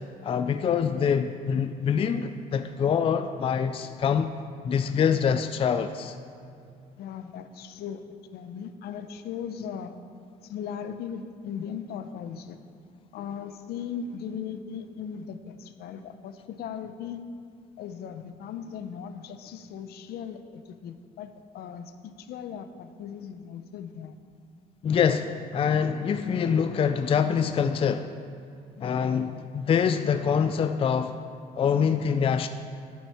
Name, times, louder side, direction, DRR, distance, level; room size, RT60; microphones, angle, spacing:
voice 1, 0.2-4.3 4.6-6.1 24.8-28.2 28.8-31.2 31.6-32.5, left 7 dB, 35° left, 9 dB, 0.4 m, -25 dB
voice 2, 7.0-8.0 8.3-9.9 10.4-12.6 13.1-17.2 17.8-24.2 28.8-28.9, left 7 dB, 70° left, 9 dB, 0.7 m, -38 dB
10.5 x 8.8 x 4.4 m, 2.5 s
cardioid pair, 110°, 17 cm